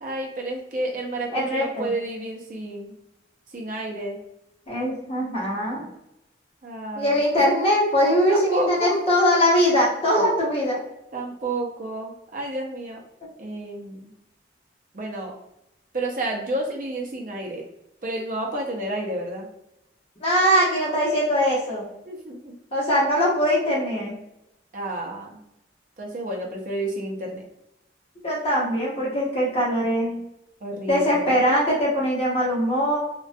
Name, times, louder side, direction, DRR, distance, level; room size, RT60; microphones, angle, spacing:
voice 1, 0.0-3.0 3.5-4.2 6.6-7.5 8.3-9.1 11.1-13.0 13.4-14.1 14.9-15.3 15.9-17.6 18.0-19.5 22.0-22.6 24.7-25.4 26.0-27.4 30.6-31.3, right 1 dB, 45° right, 0 dB, 0.5 m, -30 dB
voice 2, 1.3-1.9 4.7-5.9 7.0-10.8 20.2-21.9 22.7-24.2 28.2-30.2 30.9-33.0, equal, 30° left, -6 dB, 0.7 m, -21 dB
2.3 x 2.2 x 2.5 m, 0.85 s
head